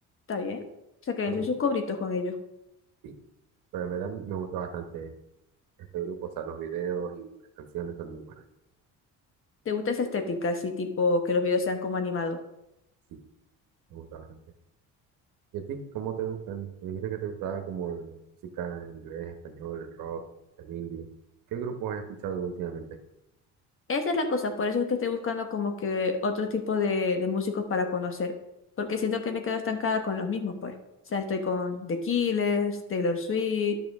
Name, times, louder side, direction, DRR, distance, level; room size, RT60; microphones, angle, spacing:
voice 1, 0.3-0.6 1.1-2.3 9.6-12.4 23.9-28.3 28.8-30.7 31.1-33.7, left 4 dB, 40° left, 6 dB, 1.2 m, -28 dB
voice 2, 3.7-5.1 5.9-8.3 13.1-13.2 13.9-14.3 15.5-18.2 18.4-20.2 20.6-21.1 21.5-23.0, right 8 dB, 80° right, 7 dB, 1.1 m, -35 dB
11.0 x 5.9 x 3.6 m, 0.88 s
cardioid pair, 105°, 34 cm